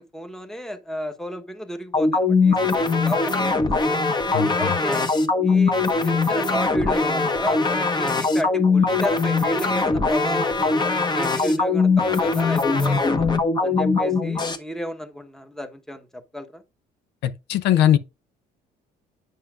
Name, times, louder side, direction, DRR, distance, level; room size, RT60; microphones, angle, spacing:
voice 1, 0.0-4.0 4.6-5.1 5.4-5.8 6.0-13.3 13.6-16.6, equal, 5° left, 1.1 m, -33 dB
sound 1, 1.9-14.6, left 4 dB, 25° left, 1.1 m, -21 dB
voice 2, 4.3-4.8 17.2-18.0, left 11 dB, 85° left, 0.7 m, -20 dB
9.1 x 5.6 x 2.4 m
cardioid pair, 110°, 17 cm